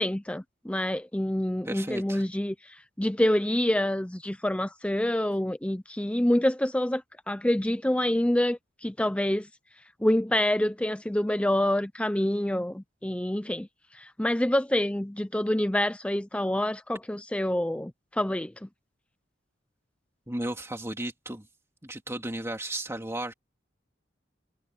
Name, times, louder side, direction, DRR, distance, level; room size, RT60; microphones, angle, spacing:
voice 1, 0.0-7.0 7.3-9.5 10.0-13.7 13.9-18.7, left 1 dB, 5° left, 0.5 m, -27 dB
voice 2, 1.6-2.2 20.3-21.5 21.8-23.3, right 1 dB, 15° right, 2.3 m, -34 dB
head